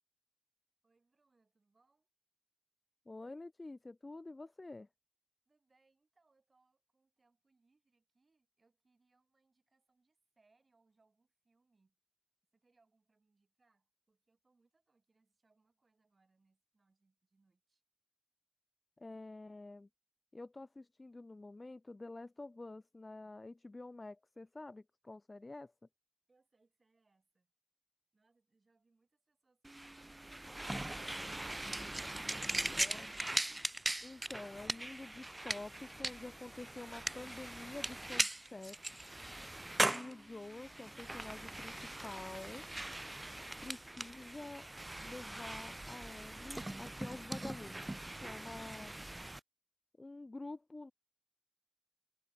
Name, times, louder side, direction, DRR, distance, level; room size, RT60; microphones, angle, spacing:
voice 1, 0.8-2.1 5.5-12.0 12.5-17.8 26.3-27.5 28.1-30.8, right 3 dB, 80° right, 6.9 m, -76 dB
voice 2, 3.1-4.9 19.0-19.9 20.3-25.7 32.8-33.1 34.0-38.8 39.9-42.7 43.6-44.7 45.0-48.9 50.0-50.9, left 2 dB, 50° left, 0.8 m, -48 dB
sound 1, 29.6-49.4, right 1 dB, 30° right, 0.3 m, -40 dB
wide cardioid pair, 65°, 0 cm